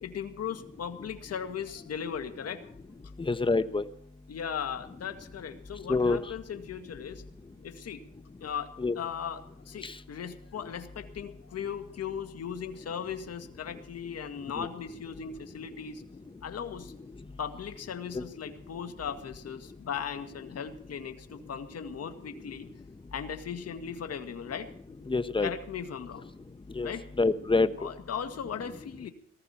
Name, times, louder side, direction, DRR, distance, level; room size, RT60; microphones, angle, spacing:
voice 1, 0.0-2.7 4.3-7.2 7.6-8.0 8.4-16.0 16.4-16.9 17.4-22.7 23.1-24.7 25.4-26.2 26.8-27.1 27.8-29.1, left 7 dB, 55° left, 8 dB, 1.9 m, -38 dB
voice 2, 3.3-3.8 5.9-6.2 8.8-8.9 18.1-18.2 25.1-25.5 26.8-26.9 27.2-27.7, left 3 dB, 15° left, 11 dB, 1.1 m, -25 dB
18.5 x 14.5 x 4.4 m, 0.66 s
cardioid pair, 90°, 30 cm